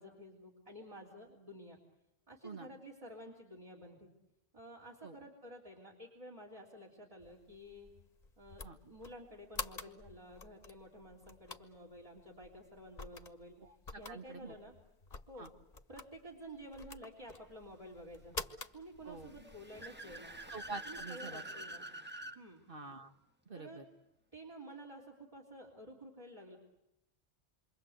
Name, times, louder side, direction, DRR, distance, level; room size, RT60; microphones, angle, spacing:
voice 1, 0.0-1.8 2.3-4.1 4.5-7.9 8.4-13.5 13.9-14.7 15.3-15.5 15.9-18.4 18.7-20.4 20.9-21.9 22.4-22.6 23.6-23.8 24.3-26.6, equal, 35° right, 0 dB, 3.5 m, -51 dB
sound 1, 7.2-21.1, left 3 dB, 40° left, 1.3 m, -50 dB
voice 2, 13.6-14.6 15.4-15.5 19.0-19.3 20.5-21.4 22.7-23.1 23.5-23.8, right 3 dB, 55° right, 6 dB, 1.9 m, -47 dB
Car / Accelerating revving vroom, 19.2-22.4, right 1 dB, 10° right, 1.3 m, -47 dB
28.0 x 24.0 x 8.0 m, 0.87 s
omnidirectional pair, 1.1 m